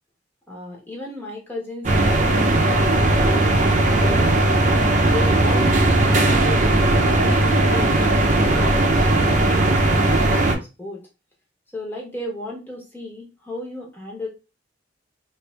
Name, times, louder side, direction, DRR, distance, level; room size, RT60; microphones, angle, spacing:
voice 1, 0.5-4.5 5.0-11.0 11.7-14.3, left 1 dB, 10° left, -2 dB, 1.2 m, -35 dB
sound 1, 1.8-10.5, right 2 dB, 40° right, 0.7 m, -18 dB
3.3 x 2.6 x 3.3 m, 0.29 s
head